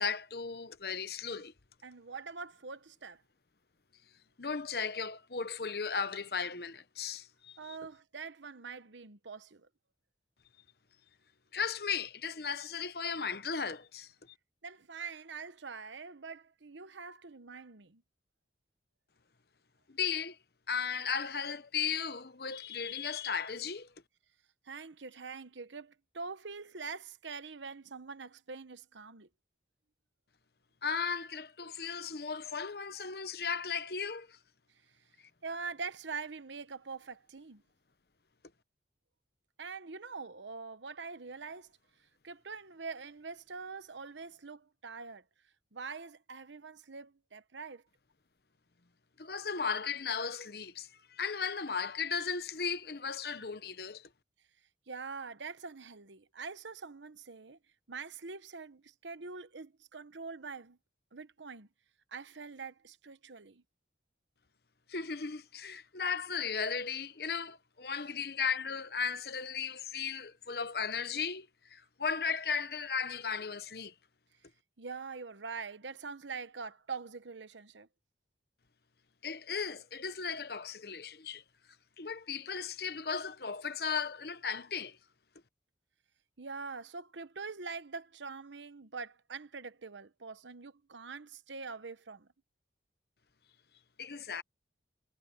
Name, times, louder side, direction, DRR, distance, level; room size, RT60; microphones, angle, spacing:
voice 1, 0.0-1.5 4.4-7.8 11.5-14.1 19.9-20.4 20.7-23.9 30.8-34.4 49.2-54.1 64.9-73.9 79.2-81.4 82.0-85.0 94.0-94.4, left 6 dB, 60° left, 1.0 m, -36 dB
voice 2, 1.8-3.2 7.6-9.7 14.6-18.0 24.6-29.3 35.4-37.6 39.6-41.7 42.2-45.2 45.7-47.8 54.9-57.6 57.9-60.8 61.1-61.7 62.1-63.6 74.8-77.9 86.4-92.3, right 4 dB, 90° right, 1.1 m, -44 dB
head